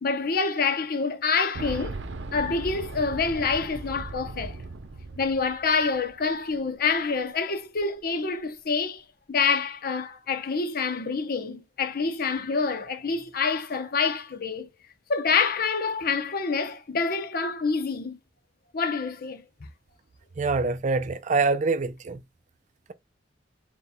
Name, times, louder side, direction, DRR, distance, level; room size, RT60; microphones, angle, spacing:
voice 1, 0.0-2.0 2.3-4.6 5.2-9.0 9.3-14.7 15.1-18.2 18.7-19.7, left 5 dB, 55° left, 0.7 m, -27 dB
Boom, 1.5-6.3 6.5-6.6 7.8-7.9, right 3 dB, 90° right, 0.7 m, -38 dB
voice 2, 20.4-22.2, right 4 dB, 45° right, 0.5 m, -25 dB
4.2 x 3.9 x 2.2 m
head